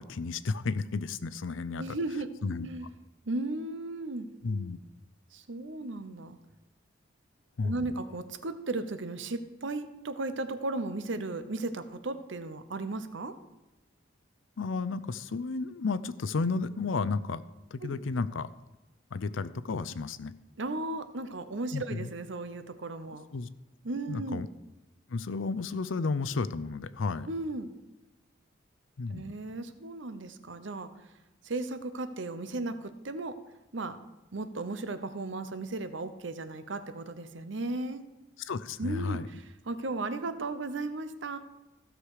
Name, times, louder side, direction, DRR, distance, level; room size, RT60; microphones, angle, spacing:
voice 1, 0.0-2.0 2.4-2.7 4.4-4.8 7.6-8.0 14.6-17.4 17.7-18.5 19.1-20.3 21.7-22.1 23.3-23.5 24.1-24.5 25.1-27.3 29.0-29.3 38.4-39.3, left 4 dB, 85° left, 15 dB, 0.5 m, -32 dB
voice 2, 1.8-2.3 2.6-2.9 3.2-4.3 5.3-6.4 7.6-13.3 17.8-18.0 20.6-23.3 23.8-24.5 27.3-27.7 29.1-30.9 31.4-33.4 33.7-34.0 34.3-38.0 38.8-41.4, right 2 dB, 75° right, 10 dB, 0.8 m, -35 dB
15.5 x 6.5 x 4.9 m, 1.0 s
head